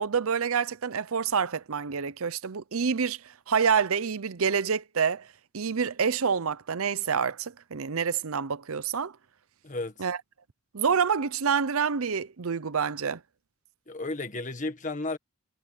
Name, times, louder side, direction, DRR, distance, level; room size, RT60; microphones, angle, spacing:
voice 1, 0.0-3.2 3.5-5.3 5.5-9.1 10.0-10.2 10.7-13.2, right 6 dB, 70° right, 0.7 m, -27 dB
voice 2, 9.6-10.0 13.9-15.2, left 2 dB, 35° left, 1.7 m, -33 dB
head